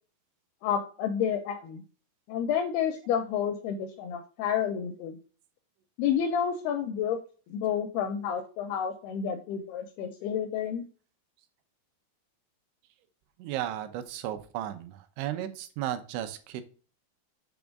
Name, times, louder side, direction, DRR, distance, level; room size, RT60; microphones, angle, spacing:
voice 1, 0.6-1.8 2.3-5.2 6.0-7.2 7.5-10.8, left 8 dB, 80° left, 7 dB, 2.3 m, -30 dB
voice 2, 13.4-16.6, right 12 dB, 90° right, 8 dB, 3.1 m, -34 dB
7.0 x 3.5 x 5.1 m, 0.38 s
omnidirectional pair, 5.1 m